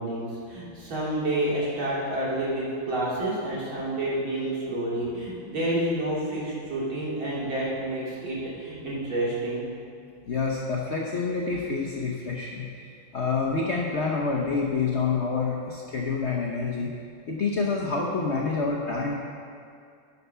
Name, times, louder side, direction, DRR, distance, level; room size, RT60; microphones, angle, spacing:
voice 1, 0.0-9.7, right 1 dB, 65° right, -7 dB, 3.2 m, -29 dB
voice 2, 10.3-16.9 17.3-19.1, left 4 dB, 85° left, -2 dB, 0.6 m, -27 dB
11.0 x 5.7 x 5.6 m, 2.3 s
omnidirectional pair, 2.4 m